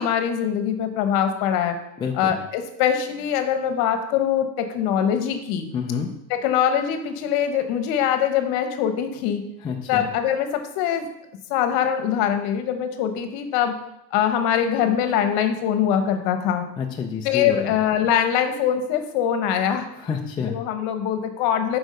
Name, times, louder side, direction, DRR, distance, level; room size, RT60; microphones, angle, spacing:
voice 1, 0.0-1.8 2.2-5.7 6.3-9.4 9.9-11.1 11.5-13.8 14.1-16.6 17.2-19.9 20.4-21.8, left 9 dB, 50° left, 8 dB, 1.1 m, -23 dB
voice 2, 2.0-2.3 5.7-6.1 9.6-10.1 16.8-17.7 19.9-20.5, left 6 dB, 10° left, 0 dB, 0.4 m, -28 dB
6.4 x 4.8 x 6.3 m, 0.85 s
supercardioid pair, 130°, 49 cm